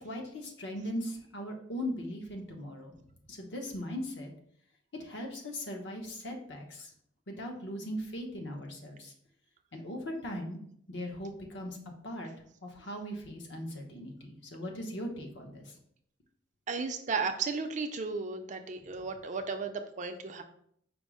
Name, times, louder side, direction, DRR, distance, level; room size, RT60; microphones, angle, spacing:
voice 1, 0.0-2.9 3.3-4.3 4.9-6.9 7.3-9.1 9.7-10.6 10.9-11.8 12.0-12.3 12.6-15.6, equal, 65° left, 2 dB, 0.9 m, -39 dB
voice 2, 16.7-20.4, right 4 dB, 40° right, 6 dB, 0.4 m, -34 dB
5.1 x 2.0 x 4.7 m, 0.66 s
head